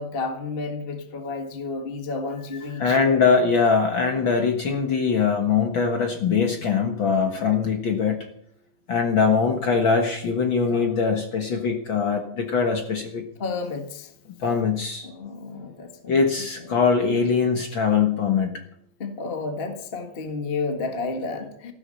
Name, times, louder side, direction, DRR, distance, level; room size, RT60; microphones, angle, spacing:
voice 1, 0.0-3.4 7.4-7.7 13.4-14.1 15.0-16.8 19.0-21.7, left 3 dB, 25° left, 6 dB, 1.3 m, -32 dB
voice 2, 2.8-8.3 8.9-13.2 14.4-15.1 16.1-18.5, left 5 dB, 50° left, 4 dB, 1.8 m, -22 dB
15.0 x 12.0 x 6.4 m, 0.68 s
omnidirectional pair, 3.4 m